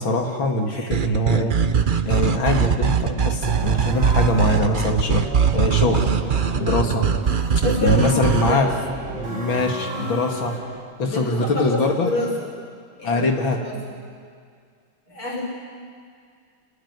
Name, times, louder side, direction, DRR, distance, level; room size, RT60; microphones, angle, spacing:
voice 1, 0.0-1.5 2.1-5.2 5.5-6.1 6.6-7.1 7.8-8.7 9.1-10.6 11.0-12.1 13.0-13.6, left 2 dB, 70° left, 3 dB, 3.0 m, -22 dB
sound 1, 0.9-8.5, right 7 dB, 80° right, 0.4 m, -21 dB
sound 2, 3.5-10.8, right 2 dB, 55° right, 3.4 m, -33 dB
voice 2, 7.6-8.7 11.0-12.3 13.0-13.2 13.6-13.7 15.1-15.4, left 2 dB, 85° left, -2 dB, 7.1 m, -27 dB
30.0 x 18.5 x 9.7 m, 2.1 s
omnidirectional pair, 2.3 m